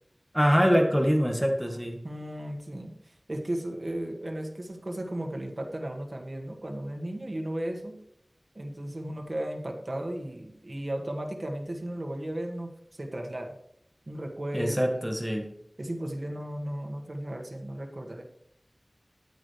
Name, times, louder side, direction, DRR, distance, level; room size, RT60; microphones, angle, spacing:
voice 1, 0.3-2.0 14.5-15.5, equal, ahead, 2 dB, 1.6 m, -24 dB
voice 2, 2.0-8.0 8.5-13.5 14.1-15.1 15.8-18.2, right 1 dB, 50° right, 2 dB, 1.7 m, -35 dB
11.0 x 8.9 x 3.4 m, 0.76 s
wide cardioid pair, 50°, 0 cm